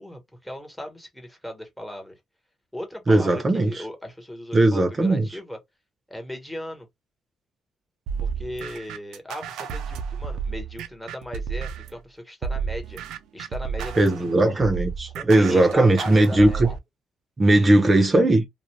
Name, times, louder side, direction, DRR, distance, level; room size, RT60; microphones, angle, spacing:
voice 1, 0.0-2.2 2.7-5.6 6.1-6.9 8.2-13.0 13.3-14.3 15.1-16.6, left 1 dB, 5° left, 1.2 m, -37 dB
voice 2, 3.1-3.8 4.5-5.3 14.0-16.7 17.4-18.5, right 2 dB, 30° right, 0.7 m, -18 dB
sound 1, 8.1-12.0 12.4-16.8, right 6 dB, 90° right, 0.4 m, -32 dB
2.4 x 2.1 x 3.1 m
cardioid pair, 90°, 0 cm